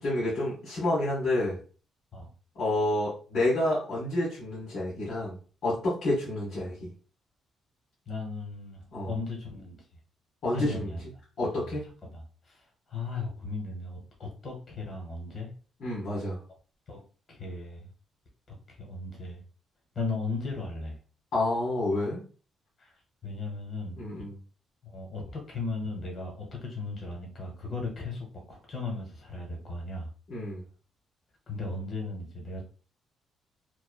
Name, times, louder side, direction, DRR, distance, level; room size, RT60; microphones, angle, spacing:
voice 1, 0.0-1.6 2.5-5.4 5.6-6.7 8.9-9.1 10.4-10.9 11.4-11.8 15.8-16.4 21.3-22.2 24.0-24.3 30.3-30.6, left 1 dB, 75° left, -7 dB, 1.3 m, -29 dB
voice 2, 8.1-9.9 10.5-11.0 11.7-11.8 12.0-15.5 16.9-17.0 17.3-17.9 18.5-19.4 19.9-21.0 22.8-22.9 23.2-24.0 24.8-30.1 31.5-32.6, left 3 dB, 45° left, 0 dB, 1.0 m, -36 dB
3.1 x 2.1 x 2.2 m, 0.39 s
cardioid pair, 90°, 0 cm